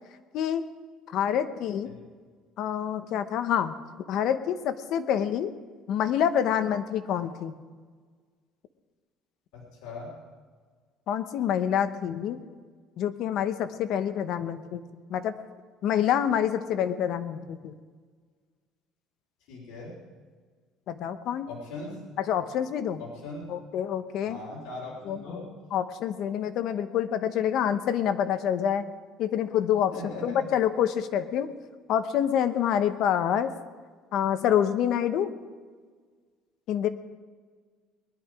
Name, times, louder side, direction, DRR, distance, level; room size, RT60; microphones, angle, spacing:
voice 1, 1.1-1.9 2.6-3.7 4.1-5.5 5.9-7.5 11.1-12.4 13.0-14.8 15.1-15.3 15.8-17.7 20.9-21.5 22.2-23.0 23.5-24.4 25.1-25.4 25.7-28.8 29.2-29.9 30.2-31.5 31.9-33.5 34.1-35.3 36.7-36.9, left 9 dB, 55° left, 11 dB, 0.9 m, -27 dB
voice 2, 9.5-10.1 19.5-19.9 21.5-22.0 23.0-23.5 24.3-25.5 29.9-30.5, left 2 dB, 75° left, -4 dB, 3.9 m, -39 dB
20.5 x 11.0 x 4.8 m, 1.5 s
cardioid pair, 160°, 0 cm